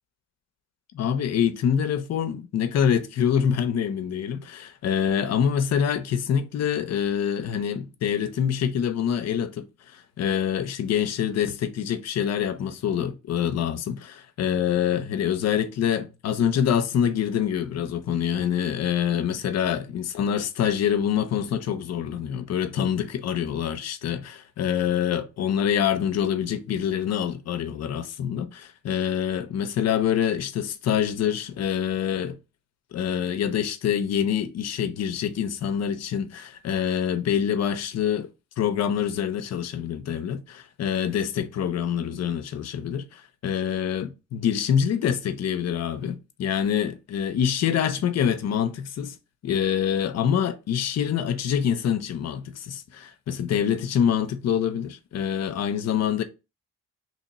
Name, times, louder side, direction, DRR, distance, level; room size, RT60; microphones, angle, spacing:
voice 1, 0.9-32.4 32.9-38.3 38.6-49.2 49.4-56.2, left 8 dB, 60° left, 0.6 m, -26 dB
3.0 x 2.8 x 4.1 m
cardioid pair, 90°, 30 cm